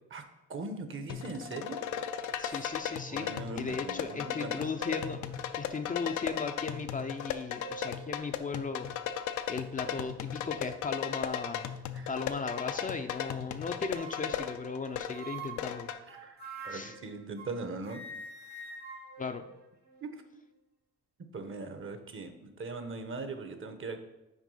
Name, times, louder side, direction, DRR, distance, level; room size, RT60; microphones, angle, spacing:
voice 1, 0.5-1.9 2.5-2.6 3.1-4.7 11.9-12.1 16.1-18.0 20.0-20.1 21.3-24.0, right 3 dB, 45° right, 8 dB, 1.0 m, -40 dB
sound 1, 1.1-16.0, left 9 dB, 75° left, 0.6 m, -36 dB
voice 2, 2.4-11.6 12.1-15.9 16.7-17.0 19.2-19.5, left 4 dB, 25° left, 6 dB, 0.5 m, -37 dB
sound 2, 4.8-5.2 5.9-6.0 7.3-8.0 8.4-8.6 9.0-9.2 9.8-10.1 10.8-11.5 12.5-13.0 13.9-14.5 15.1-17.6 17.9-20.2, right 3 dB, 65° right, 1.7 m, -46 dB
6.2 x 4.7 x 5.5 m, 0.95 s
cardioid pair, 90°, 30 cm